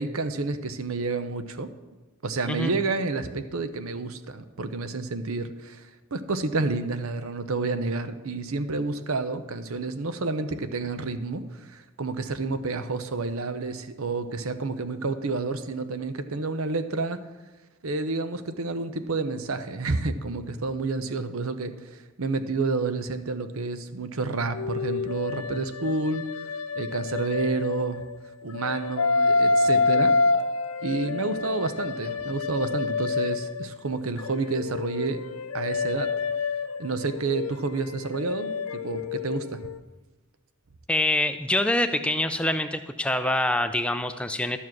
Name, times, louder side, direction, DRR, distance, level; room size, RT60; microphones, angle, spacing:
voice 1, 0.0-1.7 2.2-5.8 6.1-17.2 17.8-26.2 26.8-28.0 28.4-30.1 30.8-35.2 35.5-36.1 36.8-39.6, right 3 dB, 75° right, 10 dB, 0.8 m, -29 dB
sound 1, 24.5-28.1 28.5-33.8 34.2-39.8, left 4 dB, 75° left, 0.5 m, -27 dB
voice 2, 40.9-44.6, left 1 dB, 5° left, 9 dB, 0.4 m, -25 dB
12.0 x 7.3 x 6.1 m, 1.2 s
head